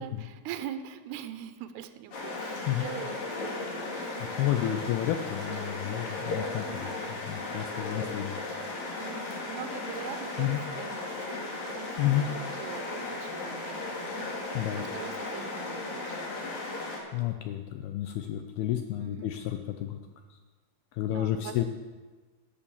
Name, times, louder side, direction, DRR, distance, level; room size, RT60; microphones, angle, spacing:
voice 1, 0.0-3.2 3.4-4.5 4.8-4.9 7.4-8.0 9.0-12.9 13.2-16.6 19.0-19.3 21.0-21.6, right 10 dB, 80° right, 10 dB, 2.6 m, -44 dB
sound 1, 2.1-17.0, left 2 dB, 45° left, 2.9 m, -36 dB
voice 2, 4.2-8.4 10.4-10.6 12.0-12.3 14.6-14.8 17.1-20.0 20.9-21.7, left 12 dB, 85° left, 6 dB, 2.2 m, -31 dB
12.5 x 7.2 x 7.1 m, 1.3 s
omnidirectional pair, 5.2 m